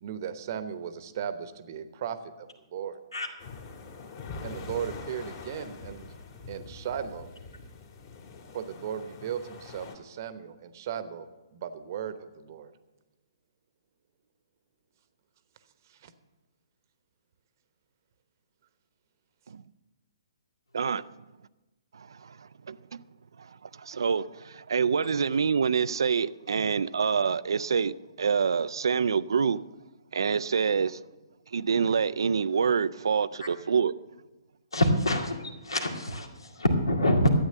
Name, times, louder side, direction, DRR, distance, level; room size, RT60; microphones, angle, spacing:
voice 1, 0.0-3.0 4.4-6.0 6.5-7.3 8.5-12.7 15.9-16.1, right 8 dB, 45° right, 1.0 m, -36 dB
sound 1, 3.4-9.9, left 4 dB, 40° left, 2.0 m, -44 dB
voice 2, 20.7-21.0 21.9-23.0 23.4-29.6 30.1-31.0 31.5-33.9, right 6 dB, 65° right, 0.4 m, -27 dB
voice 3, 34.7-35.4 35.6-37.3, equal, 80° left, 2.1 m, -25 dB
12.5 x 8.8 x 6.7 m
figure-of-eight pair, 125°, 3 cm